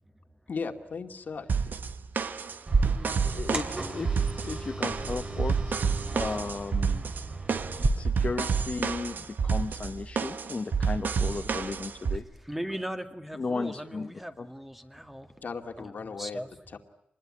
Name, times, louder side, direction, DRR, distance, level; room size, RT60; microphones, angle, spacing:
voice 1, 0.5-1.5 15.4-16.4 16.7-16.8, left 5 dB, 65° left, 5 dB, 2.3 m, -36 dB
sound 1, 1.5-12.2, right 5 dB, 70° right, 1.4 m, -29 dB
sound 2, 2.7-7.9, right 2 dB, 35° right, 3.3 m, -33 dB
voice 2, 3.2-7.0 8.0-12.2 13.4-14.5, left 4 dB, 40° left, 7 dB, 1.0 m, -35 dB
voice 3, 12.1-15.3 15.8-16.5, equal, 5° right, 6 dB, 1.9 m, -39 dB
25.5 x 20.5 x 9.9 m, 0.79 s
wide cardioid pair, 110°, 3 cm